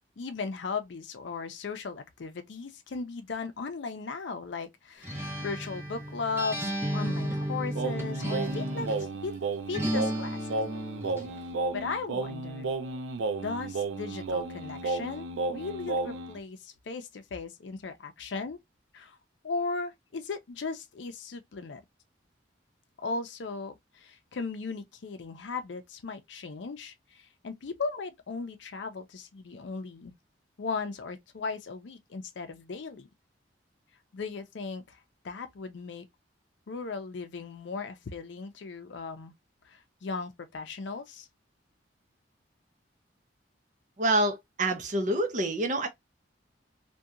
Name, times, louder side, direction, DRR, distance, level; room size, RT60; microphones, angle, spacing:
voice 1, 0.2-9.4 9.7-10.6 11.7-12.7 13.4-18.6 18.9-19.2 19.4-21.8 23.0-30.1 30.6-33.1 34.1-35.0 35.2-36.1 36.7-39.3 39.7-41.3, left 4 dB, 75° left, 0.5 m, -37 dB
Acoustic guitar, 5.0-9.1 9.7-11.3, equal, 10° right, 0.8 m, -33 dB
Singing, 7.7-16.4, right 3 dB, 90° right, 0.4 m, -33 dB
voice 2, 44.0-45.9, right 1 dB, 40° right, 0.5 m, -27 dB
2.7 x 2.2 x 2.3 m
head